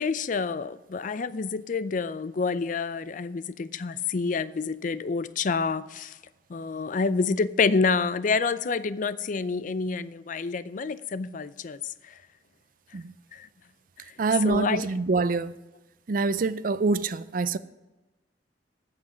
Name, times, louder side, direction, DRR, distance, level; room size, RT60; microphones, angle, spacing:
voice 1, 0.0-6.2 6.5-12.2 13.3-13.5 14.1-14.2 14.4-14.9, left 4 dB, 45° left, 0.4 m, -28 dB
voice 2, 14.2-15.5 16.1-17.6, right 3 dB, 50° right, 0.4 m, -25 dB
15.0 x 6.0 x 5.0 m
head